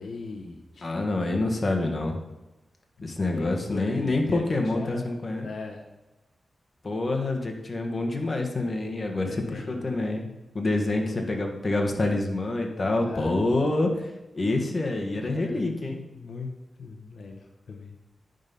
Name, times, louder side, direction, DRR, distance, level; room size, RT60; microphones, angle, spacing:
voice 1, 0.0-0.9 3.2-5.1 5.4-5.9 9.0-10.4 10.9-11.3 13.0-13.5 15.2-16.5 16.8-18.0, left 3 dB, 70° left, 2 dB, 0.9 m, -39 dB
voice 2, 0.8-2.2 3.0-5.5 6.8-10.2 10.5-16.0, left 2 dB, 40° left, 2 dB, 1.5 m, -27 dB
10.5 x 4.0 x 5.4 m, 1.0 s
cardioid pair, 75°, 0 cm